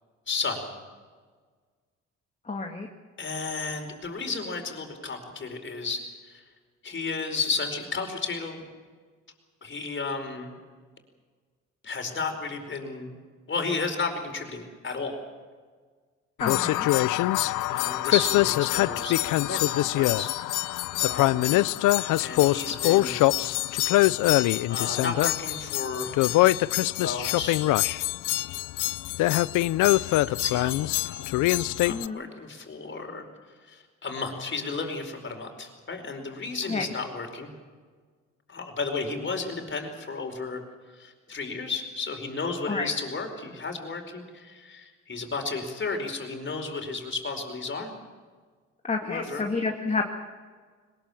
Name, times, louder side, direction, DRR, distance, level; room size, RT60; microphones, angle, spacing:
voice 1, 0.3-0.7 3.2-6.4 6.8-8.6 9.6-10.6 11.8-13.1 13.5-15.2 16.8-17.1 17.3-21.7 22.2-23.3 24.7-27.7 30.3-31.3 31.8-33.3 33.6-37.5 38.5-40.6 40.9-47.9 49.0-49.5, left 4 dB, 40° left, 5 dB, 4.8 m, -33 dB
voice 2, 2.5-2.9 16.4-16.9 31.9-32.3 36.7-36.9 42.7-42.9 48.8-50.0, left 4 dB, 25° left, 2 dB, 2.1 m, -29 dB
sound 1, 16.4-32.1, left 17 dB, 85° left, 0.5 m, -24 dB
22.0 x 20.5 x 7.2 m, 1.5 s
cardioid pair, 90°, 30 cm